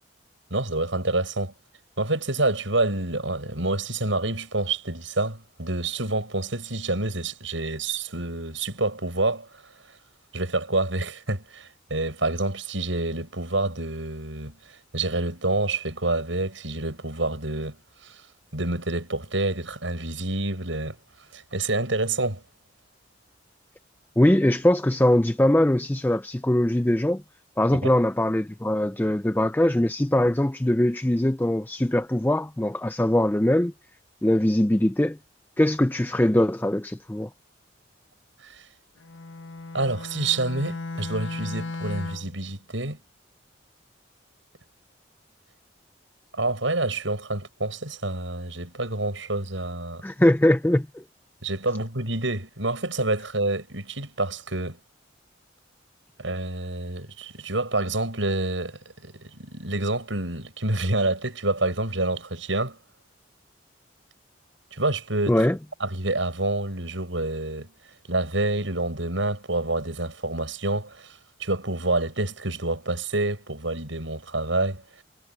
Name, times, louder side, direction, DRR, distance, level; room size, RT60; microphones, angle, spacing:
voice 1, 0.5-1.5 2.0-9.7 10.3-17.8 18.0-18.2 18.5-21.0 21.3-22.4 27.7-27.8 38.4-38.6 39.7-43.0 46.3-50.0 51.4-54.8 56.2-62.8 64.7-65.4 65.8-67.7 68.1-75.0, right 2 dB, 85° right, 7.6 m, -28 dB
voice 2, 24.2-27.2 27.6-33.7 34.2-35.2 35.6-37.3 50.0-51.0 65.3-65.6, left 1 dB, 10° left, 0.4 m, -21 dB
Bowed string instrument, 39.0-42.4, left 3 dB, 80° left, 1.6 m, -36 dB
head